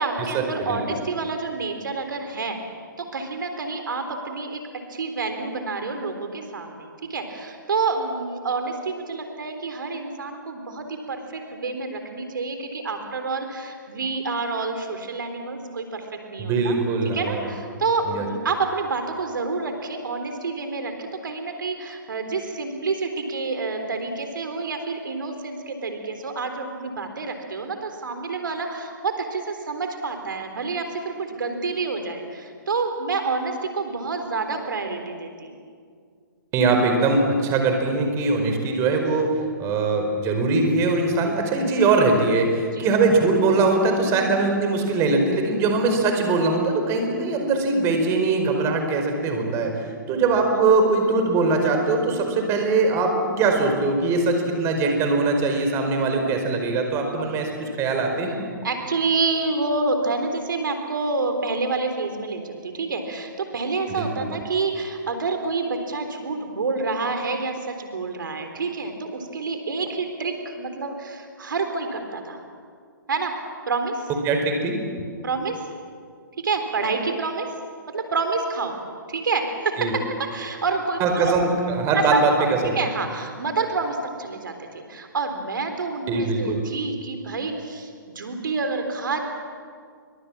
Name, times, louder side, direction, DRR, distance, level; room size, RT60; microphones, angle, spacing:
voice 1, 0.0-2.6 3.0-4.6 4.9-16.8 17.1-35.6 42.7-42.9 45.9-46.3 50.2-50.3 50.8-51.2 56.1-56.3 57.0-57.3 58.2-72.4 73.1-73.4 73.7-74.1 75.2-75.6 76.4-77.5 77.9-78.8 79.1-81.4 81.9-89.2, right 4 dB, 70° right, 6 dB, 3.8 m, -28 dB
voice 2, 16.4-17.5 18.1-18.3 36.5-49.7 50.1-57.5 57.8-58.4 63.9-64.2 74.2-74.8 79.8-79.9 81.0-82.3 82.6-82.8 86.1-86.6, right 3 dB, 25° right, 4 dB, 4.8 m, -21 dB
28.5 x 24.0 x 7.5 m, 2.1 s
hypercardioid pair, 135°, 11 cm